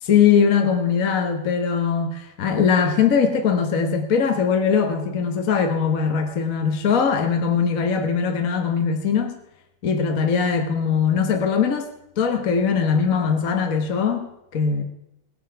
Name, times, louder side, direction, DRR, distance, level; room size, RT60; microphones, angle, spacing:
voice 1, 0.0-9.4 9.8-11.9 12.2-14.8, left 6 dB, 45° left, 4 dB, 1.3 m, -21 dB
18.5 x 8.6 x 5.7 m, 0.85 s
omnidirectional pair, 2.4 m